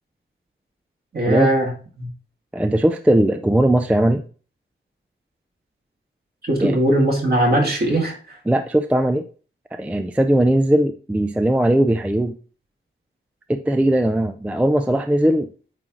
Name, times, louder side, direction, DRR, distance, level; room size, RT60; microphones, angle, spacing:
voice 1, 1.1-1.7 2.0-2.1 6.4-8.4, right 1 dB, 45° right, -1 dB, 2.1 m, -19 dB
voice 2, 2.5-4.2 6.6-6.8 8.5-9.2 9.7-12.4 13.5-15.5, right 1 dB, 5° right, 8 dB, 0.3 m, -19 dB
8.9 x 3.1 x 3.6 m, 0.39 s
wide cardioid pair, 160°, 21 cm